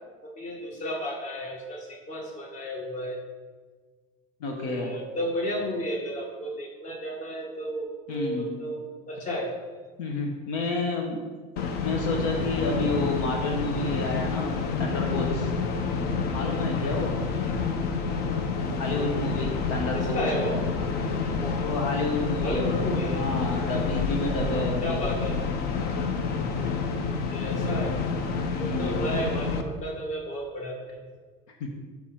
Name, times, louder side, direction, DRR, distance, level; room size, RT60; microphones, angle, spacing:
voice 1, 0.2-3.2 4.6-9.5 19.9-20.6 21.4-21.6 22.4-23.3 24.4-25.4 27.1-28.0 28.6-31.0, equal, 45° left, 0 dB, 1.8 m, -33 dB
voice 2, 4.4-5.0 8.1-8.6 10.0-11.2 11.8-15.5 16.3-17.2 18.8-20.2 21.5-22.7 23.1-25.0 28.5-29.0 31.6-31.7, left 2 dB, 85° left, 1 dB, 1.1 m, -30 dB
sound 1, 11.6-29.6, left 4 dB, 60° left, 0.8 m, -28 dB
7.0 x 6.0 x 4.4 m, 1.4 s
supercardioid pair, 115°, 18 cm